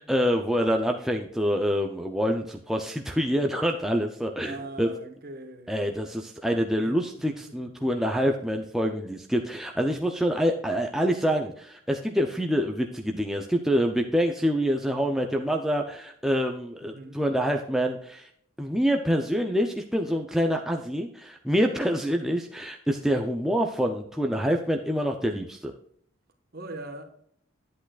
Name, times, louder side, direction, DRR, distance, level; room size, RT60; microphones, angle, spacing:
voice 1, 0.0-4.9 5.7-18.3 18.6-25.7, equal, ahead, 0.5 m, -26 dB
voice 2, 4.4-5.7 6.8-6.9 7.8-7.9 16.8-17.2 26.5-27.0, right 2 dB, 45° right, 1.3 m, -40 dB
10.5 x 8.5 x 2.4 m
head